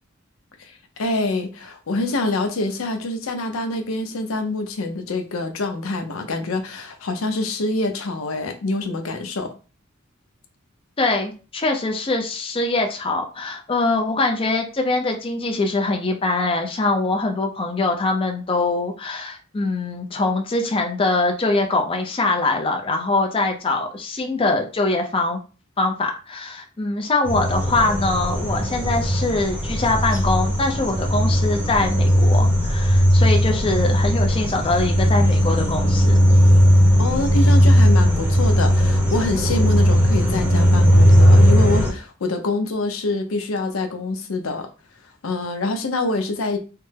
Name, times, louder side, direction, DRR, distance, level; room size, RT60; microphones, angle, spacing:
voice 1, 1.0-9.5 37.0-44.7 45.2-46.6, left 2 dB, 85° left, 0.6 m, -25 dB
voice 2, 11.0-25.4 25.8-36.2, left 2 dB, 25° left, 0.5 m, -23 dB
sound 1, 27.3-41.9, equal, 5° right, 0.8 m, -17 dB
3.3 x 2.0 x 3.2 m
head